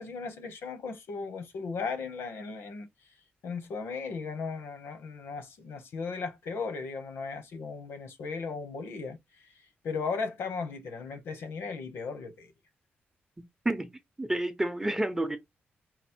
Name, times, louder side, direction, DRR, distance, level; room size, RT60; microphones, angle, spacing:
voice 1, 0.0-2.9 3.4-9.5 9.8-12.5, left 4 dB, 85° left, 1.1 m, -36 dB
voice 2, 13.6-15.4, right 1 dB, 10° right, 0.6 m, -30 dB
4.1 x 2.1 x 4.4 m
wide cardioid pair, 135°, 4 cm